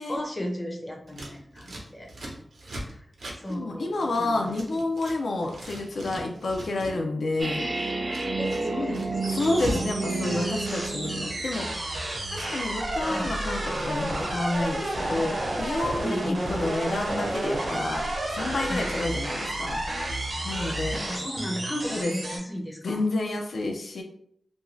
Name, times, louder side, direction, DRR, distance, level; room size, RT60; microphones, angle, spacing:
voice 1, 0.1-2.1 2.8-3.1 3.4-4.8 8.4-9.4 13.1-13.3 16.0-16.5 18.7-19.0 20.7-23.0, equal, 25° left, 1 dB, 0.5 m, -35 dB
Scissors, 1.1-5.2 5.4-7.0 7.3-9.9 10.2-11.1, right 1 dB, 80° right, 0.7 m, -39 dB
voice 2, 3.5-7.7 9.3-11.7 12.3-18.0 18.3-19.8 20.4-21.0 21.9-22.1 22.8-24.0, left 2 dB, 80° left, 2 dB, 0.4 m, -29 dB
sound 1, 7.4-11.4, right 3 dB, 35° right, 0.4 m, -30 dB
sound 2, 9.2-22.4, right 1 dB, 55° right, 0.9 m, -31 dB
2.5 x 2.2 x 3.1 m, 0.68 s
wide cardioid pair, 120°, 0 cm